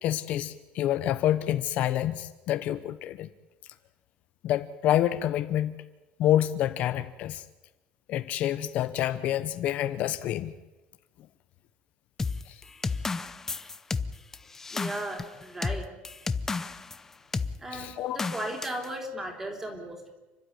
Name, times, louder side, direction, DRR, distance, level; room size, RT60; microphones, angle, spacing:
voice 1, 0.0-3.3 4.4-5.8 6.2-7.4 8.1-10.5 12.5-12.6 17.7-18.3, left 12 dB, 50° left, 11 dB, 0.9 m, -27 dB
sound 1, 12.2-17.0 17.3-17.6 18.2-18.9, left 4 dB, 15° left, 0.7 m, -32 dB
voice 2, 14.7-15.9 17.6-20.0, right 1 dB, 10° right, 3 dB, 3.8 m, -36 dB
30.0 x 12.0 x 9.6 m, 1.1 s
cardioid pair, 170°, 3 cm